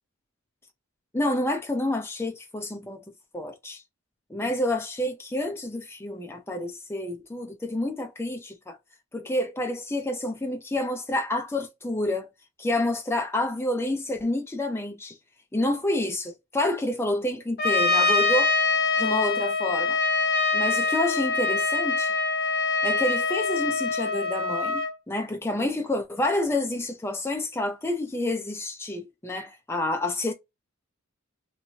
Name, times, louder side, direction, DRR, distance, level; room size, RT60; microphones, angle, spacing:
voice 1, 1.1-3.0 3.3-3.8 4.3-8.8 9.1-12.3 12.6-15.2 15.5-18.5 19.0-20.0 20.5-22.2 22.8-24.8 25.1-30.3, left 1 dB, 10° left, 0.5 m, -28 dB
Trumpet, 17.6-24.9, left 4 dB, 45° left, 0.8 m, -24 dB
2.9 x 2.6 x 2.7 m
head